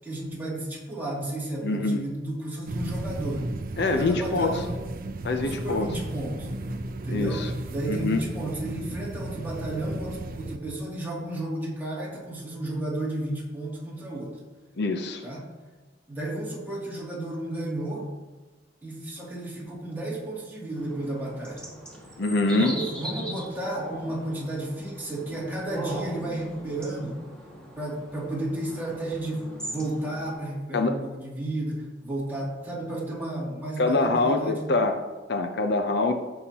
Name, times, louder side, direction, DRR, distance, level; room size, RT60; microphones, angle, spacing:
voice 1, 0.0-3.5 3.9-4.7 5.3-6.5 7.0-7.4 7.7-14.4 15.2-15.4 16.1-18.1 18.8-21.6 22.6-27.2 27.8-34.7, right 1 dB, 10° right, -6 dB, 2.6 m, -32 dB
voice 2, 1.6-2.0 3.8-4.6 5.2-5.9 7.1-7.5 7.9-8.2 14.8-15.2 22.2-22.8 30.7-31.0 33.8-35.0 35.3-36.1, left 3 dB, 65° left, 6 dB, 0.6 m, -24 dB
sound 1, 2.7-10.6, right 2 dB, 50° right, 0.6 m, -34 dB
sound 2, 20.8-30.3, right 1 dB, 5° left, 1.9 m, -40 dB
15.5 x 5.7 x 2.9 m, 1.3 s
head